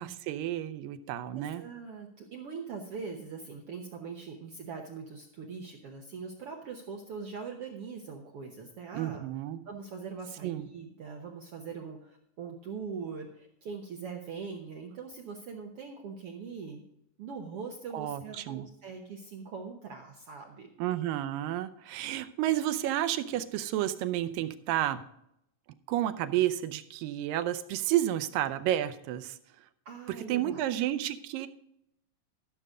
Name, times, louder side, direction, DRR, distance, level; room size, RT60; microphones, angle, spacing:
voice 1, 0.0-1.6 8.9-9.6 10.4-10.7 17.9-18.7 20.8-25.0 25.9-29.4 30.3-31.5, right 13 dB, 90° right, 12 dB, 2.4 m, -31 dB
voice 2, 1.3-9.2 9.7-16.8 17.2-20.7 29.8-30.7, right 5 dB, 65° right, 2 dB, 1.5 m, -42 dB
13.5 x 6.6 x 4.9 m, 0.79 s
omnidirectional pair, 3.9 m